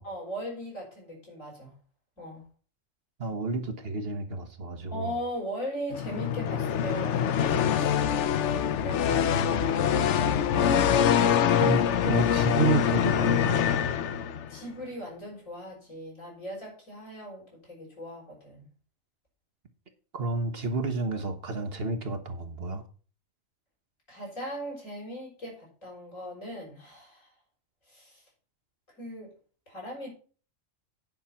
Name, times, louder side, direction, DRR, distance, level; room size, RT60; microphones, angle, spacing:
voice 1, 0.0-1.7 2.2-2.4 4.9-8.3 8.8-9.3 9.7-10.3 14.5-18.7 24.1-27.3 27.9-28.2 29.0-29.3 29.7-30.1, equal, 85° left, 6.1 m, -39 dB
voice 2, 3.2-5.1 9.1-9.8 11.6-13.6 20.1-22.8, right 3 dB, 50° right, 1.3 m, -31 dB
sound 1, 5.9-14.6, left 8 dB, 65° left, 1.0 m, -24 dB
9.6 x 5.6 x 5.7 m
omnidirectional pair, 1.3 m